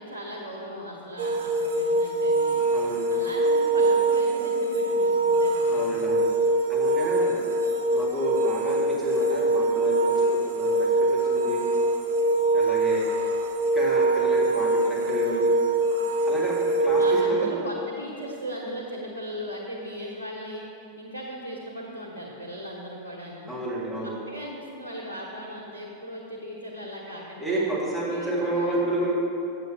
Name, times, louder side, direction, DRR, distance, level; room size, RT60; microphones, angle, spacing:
voice 1, 0.0-2.6 3.1-6.0 16.9-20.7 21.0-23.6 24.0-27.7 28.1-28.8, equal, 85° left, -6 dB, 1.1 m, -38 dB
sound 1, 1.2-17.2, right 2 dB, 65° right, 0.9 m, -23 dB
voice 2, 2.7-3.1 5.7-6.3 6.7-7.4 7.9-11.6 12.5-13.1 13.7-15.5 16.3-17.5 23.5-24.2 27.4-29.1, right 1 dB, ahead, -7 dB, 2.0 m, -30 dB
7.8 x 7.0 x 4.7 m, 2.7 s
figure-of-eight pair, 90°, 0 cm